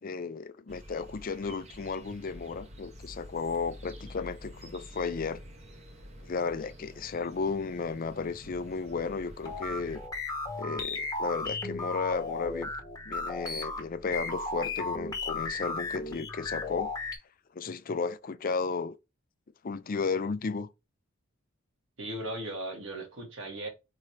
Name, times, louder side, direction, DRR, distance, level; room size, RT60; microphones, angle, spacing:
voice 1, 0.0-5.4 6.2-10.0 10.6-12.7 13.1-16.9 17.5-19.0 19.6-20.7, left 4 dB, 45° left, 0.5 m, -34 dB
sound 1, 0.7-10.1, equal, 35° right, 0.9 m, -48 dB
sound 2, 9.4-17.2, left 3 dB, 20° left, 1.1 m, -35 dB
voice 2, 22.0-23.7, right 1 dB, 70° right, 2.0 m, -37 dB
4.4 x 3.7 x 3.2 m
head